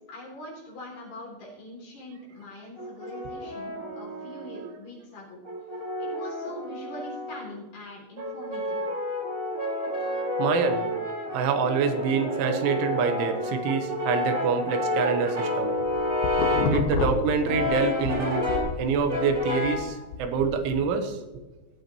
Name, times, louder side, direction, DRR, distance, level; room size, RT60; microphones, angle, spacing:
voice 1, 0.1-5.4 6.0-8.8, left 1 dB, 45° left, -4 dB, 4.9 m, -42 dB
Brass instrument, 2.8-4.7 5.4-7.5 8.2-16.8 17.4-18.8 19.1-19.9, left 1 dB, 45° right, 0.9 m, -30 dB
voice 2, 10.4-10.9 11.3-15.8 16.6-18.5 18.8-21.2, right 5 dB, 80° right, 6 dB, 3.4 m, -26 dB
sound 1, 15.6-18.1 18.5-20.9, left 4 dB, 70° left, 2.3 m, -30 dB
19.0 x 8.3 x 3.0 m, 1.2 s
omnidirectional pair, 5.5 m